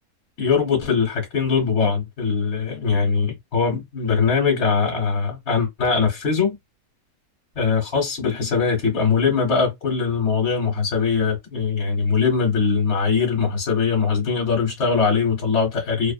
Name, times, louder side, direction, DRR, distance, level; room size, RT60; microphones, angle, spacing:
voice 1, 0.4-6.6 7.6-16.1, left 5 dB, 50° left, 1.2 m, -21 dB
2.7 x 2.0 x 2.4 m
omnidirectional pair, 1.6 m